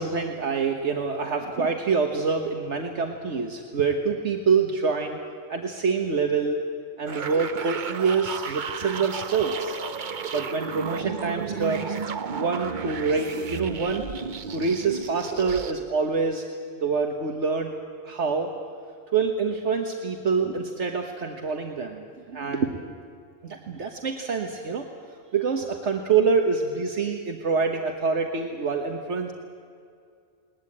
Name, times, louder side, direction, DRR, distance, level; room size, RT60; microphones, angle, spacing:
voice 1, 0.0-5.2 5.5-6.6 7.0-9.7 10.3-12.0 12.3-14.1 14.5-16.4 16.8-17.7 18.0-18.5 19.1-22.7 23.4-24.9 25.3-29.3, right 5 dB, 70° right, 3 dB, 1.6 m, -26 dB
sound 1, 7.1-15.7, right 6 dB, 45° right, 0.9 m, -33 dB
21.0 x 19.5 x 8.7 m, 2.3 s
omnidirectional pair, 1.3 m